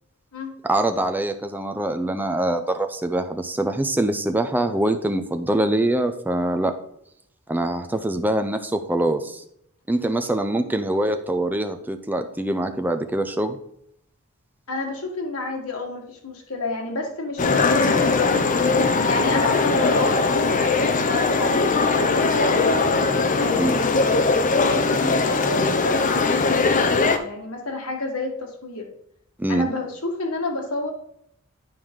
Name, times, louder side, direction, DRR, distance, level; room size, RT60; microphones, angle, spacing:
voice 1, 0.6-6.8 7.5-9.4 9.9-13.6 23.6-23.8 29.4-29.7, right 1 dB, 10° right, 7 dB, 0.6 m, -24 dB
voice 2, 14.7-18.4 19.1-22.9 23.4-24.3 24.6-28.9 29.5-30.9, left 2 dB, 85° left, 1 dB, 1.6 m, -30 dB
sound 1, 17.4-27.2, left 3 dB, 35° left, 0.6 m, -20 dB
9.0 x 4.8 x 3.7 m, 0.73 s
head